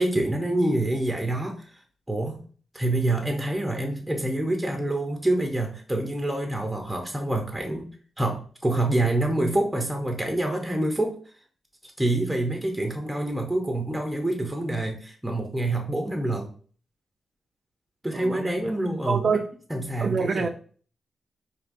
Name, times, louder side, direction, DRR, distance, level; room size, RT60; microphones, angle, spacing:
voice 1, 0.0-1.6 2.1-2.4 2.7-7.9 8.2-11.2 12.0-16.5 18.0-19.4 19.7-20.5, right 1 dB, 5° right, 3 dB, 0.7 m, -26 dB
voice 2, 18.1-18.5 19.1-19.5 20.0-20.5, right 5 dB, 45° right, 6 dB, 0.4 m, -26 dB
5.0 x 2.7 x 2.6 m, 0.43 s
wide cardioid pair, 115°, 0 cm